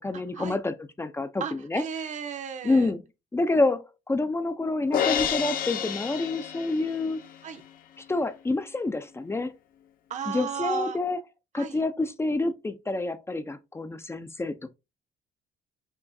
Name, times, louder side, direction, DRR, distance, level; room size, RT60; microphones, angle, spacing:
voice 1, 0.0-1.4 1.7-1.8 2.6-3.0 3.3-7.2 8.0-9.5 10.3-11.2 11.5-14.7, left 2 dB, 15° left, 0.5 m, -28 dB
voice 2, 1.4-2.9 7.4-7.6 10.1-11.0 11.6-11.8, right 7 dB, 45° right, 0.9 m, -34 dB
Crash cymbal, 4.9-7.2, left 9 dB, 55° left, 0.8 m, -29 dB
5.8 x 3.0 x 2.7 m
cardioid pair, 110°, 17 cm